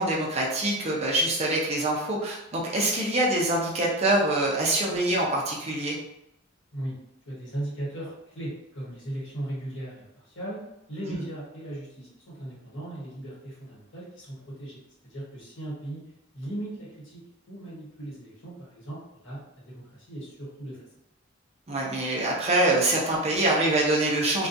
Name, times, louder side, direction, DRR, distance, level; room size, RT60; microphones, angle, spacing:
voice 1, 0.0-6.0 11.0-11.1 21.7-24.5, right 1 dB, 30° right, -3 dB, 0.5 m, -25 dB
voice 2, 7.2-10.6 10.9-16.0 16.3-17.2 17.5-20.8, right 1 dB, 75° left, -7 dB, 1.2 m, -37 dB
2.3 x 2.2 x 2.6 m, 0.87 s
head